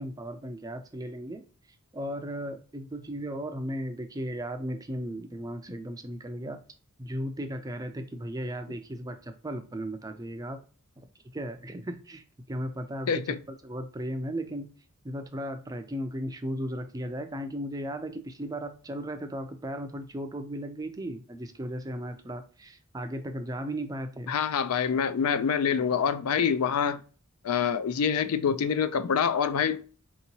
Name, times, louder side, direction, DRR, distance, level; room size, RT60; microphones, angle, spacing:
voice 1, 0.0-1.4 1.9-6.6 7.0-10.6 11.3-14.7 15.0-24.3, equal, 15° right, 0.4 m, -36 dB
voice 2, 13.1-13.4 24.3-27.0 27.4-29.8, left 7 dB, 70° left, 0.4 m, -26 dB
4.4 x 2.9 x 2.7 m
head